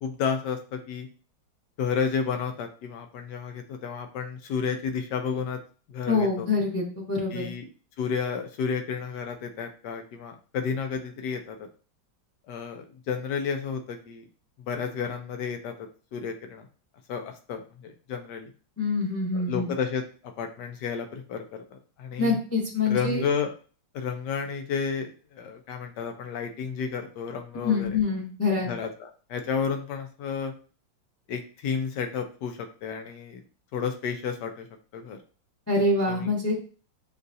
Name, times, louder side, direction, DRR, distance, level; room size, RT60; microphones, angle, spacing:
voice 1, 0.0-1.1 1.8-5.6 5.9-6.5 7.3-7.7 8.0-11.7 12.5-14.2 14.6-15.7 16.1-16.7 17.1-18.5 19.3-20.0 20.4-22.4 22.9-23.5 23.9-28.0 28.7-30.5 31.3-33.4 33.7-34.7 34.9-35.2 36.1-36.3, left 6 dB, 70° left, 5 dB, 1.2 m, -31 dB
voice 2, 6.1-7.5 18.8-19.7 22.2-23.2 27.6-28.7 35.7-36.5, left 3 dB, 10° left, -3 dB, 0.8 m, -25 dB
6.4 x 2.4 x 2.7 m, 0.38 s
omnidirectional pair, 2.1 m